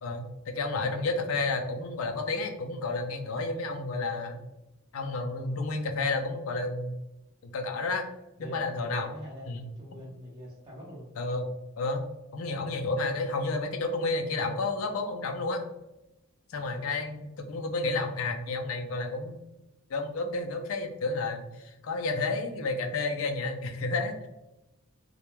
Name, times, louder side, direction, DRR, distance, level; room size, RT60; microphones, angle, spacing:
voice 1, 0.0-4.4 4.9-7.0 7.4-8.1 8.4-9.1 9.5-9.6 11.2-11.5 11.8-12.1 12.3-15.6 16.5-19.4 19.9-24.3, left 3 dB, 70° left, 4 dB, 0.4 m, -31 dB
voice 2, 8.4-11.1 18.0-18.3, equal, 25° right, -8 dB, 0.6 m, -45 dB
2.3 x 2.1 x 3.0 m, 0.94 s
head